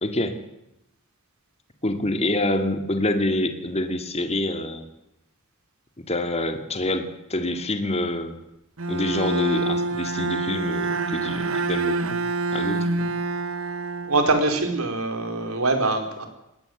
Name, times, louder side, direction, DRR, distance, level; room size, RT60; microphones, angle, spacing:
voice 1, 0.0-0.4 1.8-4.9 6.0-8.4 8.9-12.2 12.5-13.1, left 1 dB, 30° left, 7 dB, 2.2 m, -26 dB
Bowed string instrument, 8.8-14.8, right 3 dB, 70° right, 1.3 m, -26 dB
voice 2, 14.1-16.3, right 2 dB, 90° right, 6 dB, 4.5 m, -23 dB
20.5 x 17.5 x 8.0 m, 0.88 s
head